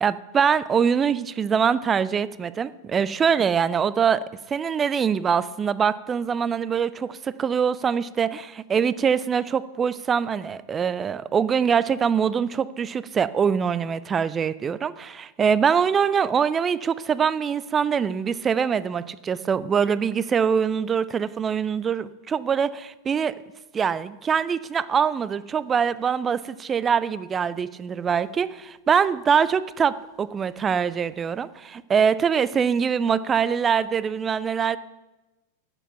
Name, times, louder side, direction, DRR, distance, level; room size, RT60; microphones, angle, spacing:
voice 1, 0.0-23.3 23.7-34.8, right 7 dB, 20° right, 17 dB, 0.4 m, -23 dB
9.8 x 7.5 x 5.8 m, 1.1 s
figure-of-eight pair, 90°, 0 cm